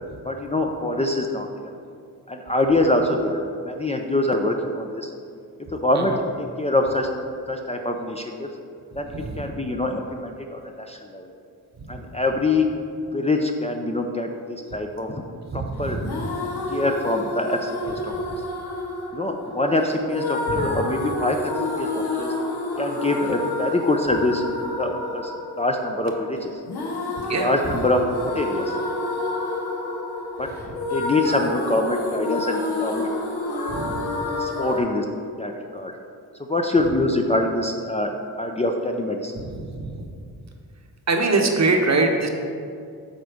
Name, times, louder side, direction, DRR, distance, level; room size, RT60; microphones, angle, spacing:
voice 1, 0.3-1.7 2.3-5.1 5.7-7.1 7.5-8.5 9.0-10.6 10.9-11.3 11.9-12.7 13.1-15.2 15.5-16.0 16.7-18.1 19.1-21.4 21.8-22.3 22.8-25.3 25.6-26.5 27.4-28.7 30.4-30.5 30.9-33.1 34.4-35.9 36.5-38.1 38.4-39.3, left 2 dB, 15° left, 3 dB, 0.5 m, -24 dB
voice 2, 9.1-9.5 11.8-11.9 15.5-16.3 20.5-20.8 27.3-27.7 33.7-34.0 39.4-40.1 41.1-42.3, right 3 dB, 45° right, 3 dB, 0.9 m, -24 dB
sound 1, 16.0-34.8, left 2 dB, 75° left, 1.2 m, -29 dB
7.9 x 4.0 x 5.0 m, 2.3 s
cardioid pair, 75°, 39 cm